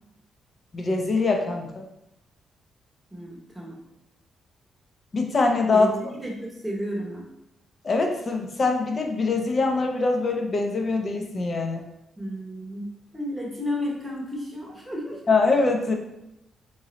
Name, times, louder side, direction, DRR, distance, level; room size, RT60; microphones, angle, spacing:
voice 1, 0.7-1.9 5.1-5.9 7.8-11.8 15.3-15.9, left 3 dB, 30° left, 3 dB, 0.6 m, -23 dB
voice 2, 3.1-3.8 5.7-7.2 12.2-15.2, equal, 5° right, -3 dB, 0.9 m, -32 dB
3.7 x 3.1 x 3.9 m, 0.86 s
cardioid pair, 170°, 0 cm